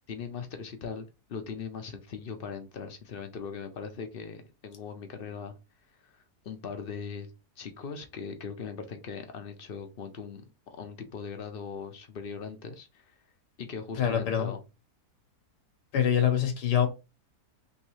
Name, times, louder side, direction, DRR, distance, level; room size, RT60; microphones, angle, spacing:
voice 1, 0.1-5.6 6.0-7.3 7.6-13.1 13.6-14.6, left 6 dB, 60° left, 0.6 m, -40 dB
voice 2, 14.0-14.5 15.9-16.9, left 9 dB, 90° left, 1.5 m, -25 dB
3.6 x 3.1 x 3.0 m
omnidirectional pair, 1.7 m